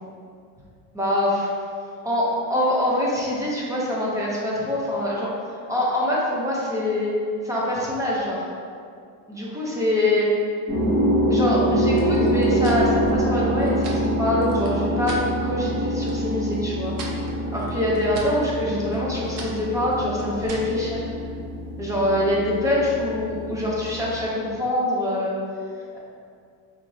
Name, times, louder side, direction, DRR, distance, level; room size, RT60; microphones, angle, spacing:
voice 1, 0.9-1.5 2.0-5.3 5.7-7.1 7.4-8.4 9.3-10.3 11.3-16.9 17.5-21.0 21.8-25.4 25.9-26.0, left 1 dB, 10° right, -5 dB, 0.5 m, -24 dB
sound 1, 10.7-24.2, equal, 30° right, 1.1 m, -25 dB
sound 2, 12.0-15.3 15.7-16.2 16.5-20.8, right 3 dB, 65° right, 0.7 m, -41 dB
4.8 x 3.0 x 2.6 m, 2.3 s
cardioid pair, 155°, 40 cm